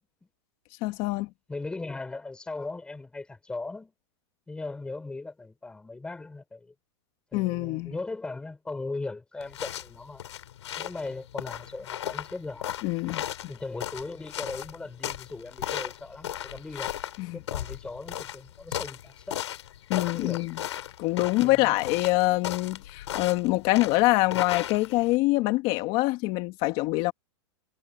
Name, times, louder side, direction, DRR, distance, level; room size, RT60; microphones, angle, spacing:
voice 1, 0.8-1.3 7.3-7.9 12.8-13.2 17.2-17.4 19.9-20.6 21.0-27.1, left 20 dB, 35° left, 2.5 m, -25 dB
voice 2, 1.5-3.9 4.5-6.7 7.3-10.3 10.8-12.7 13.5-16.9 17.3-19.4 20.1-20.5 21.3-21.7, left 3 dB, 5° left, 5.4 m, -38 dB
sound 1, 9.4-25.2, left 11 dB, 85° left, 7.2 m, -36 dB
supercardioid pair, 160°, 14 cm